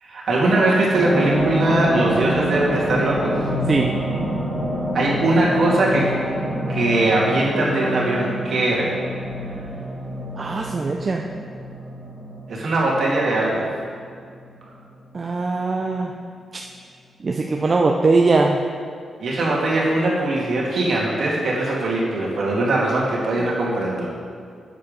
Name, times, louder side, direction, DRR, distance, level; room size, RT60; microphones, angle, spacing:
voice 1, 0.0-3.5 4.9-6.1 6.7-8.9 12.5-13.7 19.2-24.1, right 2 dB, 60° right, -5 dB, 2.5 m, -21 dB
sound 1, 0.9-13.9 14.3-14.4, equal, 15° right, 2.3 m, -27 dB
voice 2, 10.4-11.2 15.1-16.1 16.5-16.6 17.2-18.6, right 3 dB, 35° right, 2 dB, 0.5 m, -20 dB
8.5 x 7.2 x 5.2 m, 2.2 s
cardioid pair, 105°, 0 cm